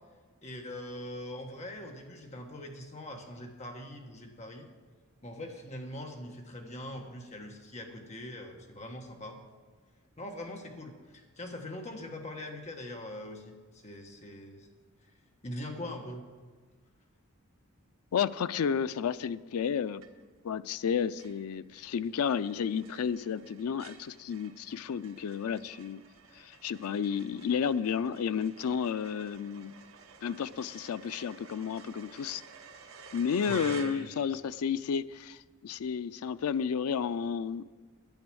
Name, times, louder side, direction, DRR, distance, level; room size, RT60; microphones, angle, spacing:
voice 1, 0.4-4.7 5.2-9.4 10.2-14.7 15.4-16.3 33.5-34.1, left 1 dB, 30° left, 2 dB, 1.3 m, -42 dB
voice 2, 18.1-20.0 20.4-26.0 26.3-29.7 30.2-32.4 33.1-37.7, left 7 dB, 85° left, 14 dB, 0.4 m, -32 dB
sound 1, 20.0-20.5 20.8-20.9 21.2-34.5, right 6 dB, 70° right, 1.1 m, -52 dB
10.5 x 8.8 x 6.2 m, 1.4 s
head